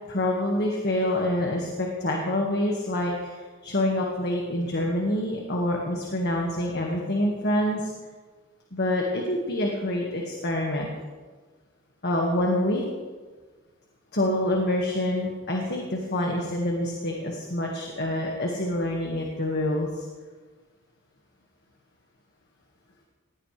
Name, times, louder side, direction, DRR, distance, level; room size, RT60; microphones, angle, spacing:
voice 1, 0.1-7.9 8.7-10.9 12.0-12.8 14.1-20.1, left 1 dB, 50° left, -1 dB, 1.8 m, -26 dB
19.5 x 16.5 x 3.4 m, 1.4 s
head